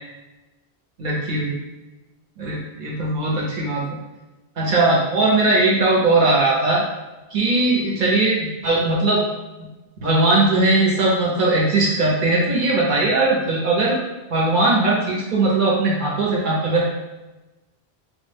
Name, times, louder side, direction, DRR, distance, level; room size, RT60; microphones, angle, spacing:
voice 1, 1.0-1.6 2.4-3.8 4.6-6.8 7.3-9.2 9.6-9.7 10.0-14.0 14.3-16.9, right 2 dB, 55° right, -3 dB, 0.8 m, -19 dB
2.1 x 2.1 x 3.3 m, 1.1 s
omnidirectional pair, 1.1 m